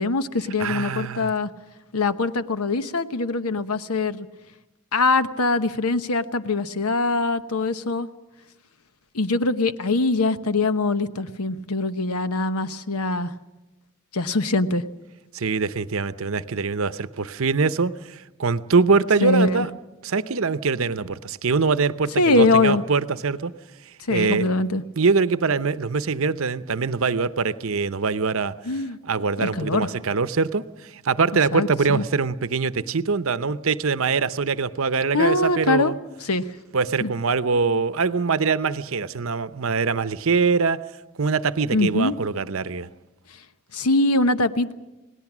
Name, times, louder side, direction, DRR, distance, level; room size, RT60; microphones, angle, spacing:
voice 1, 0.0-1.5 1.9-4.3 4.9-8.1 9.1-13.3 14.1-14.8 19.2-19.7 22.2-22.8 24.1-24.8 28.6-29.0 29.4-29.9 31.5-32.0 35.1-36.0 36.2-36.4 37.0-37.1 41.7-42.1 43.7-44.7, left 3 dB, 85° left, 11 dB, 1.0 m, -22 dB
voice 2, 0.6-1.3 15.3-19.7 20.0-23.5 24.1-24.5 25.0-28.5 29.0-36.0 36.7-40.8 41.2-42.9, right 4 dB, 65° right, 14 dB, 0.7 m, -23 dB
28.5 x 18.5 x 6.1 m, 1.0 s
head